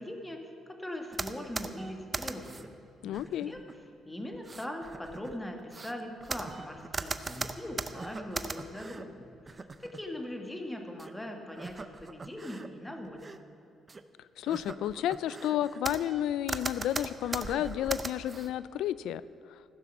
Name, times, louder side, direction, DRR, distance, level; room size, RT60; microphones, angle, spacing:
voice 1, 0.0-2.7 3.0-3.6 4.0-13.3, left 1 dB, 10° left, 3 dB, 1.5 m, -41 dB
sound 1, 1.1-2.7 3.1-3.7 4.3-9.0 9.5-10.0 11.0-11.1 11.5-12.7 13.0-13.4 13.9-14.0 14.4-16.2 16.5-18.5, right 4 dB, 30° right, 0.6 m, -39 dB
voice 2, 3.0-3.5 14.4-19.2 19.5-19.6, left 11 dB, 85° left, 17 dB, 0.3 m, -31 dB
15.5 x 7.0 x 6.1 m, 2.8 s
cardioid pair, 90°, 0 cm